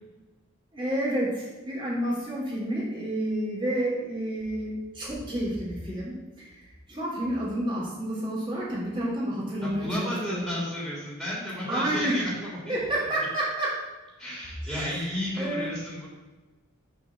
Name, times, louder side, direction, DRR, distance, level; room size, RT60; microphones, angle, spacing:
voice 1, 0.7-6.5 6.9-10.5 11.6-12.2 12.7-13.8 14.7-15.7, right 1 dB, 25° right, -6 dB, 3.2 m, -30 dB
voice 2, 9.6-12.7 14.2-16.1, left 1 dB, ahead, -7 dB, 3.2 m, -33 dB
6.8 x 5.5 x 6.9 m, 1.2 s
head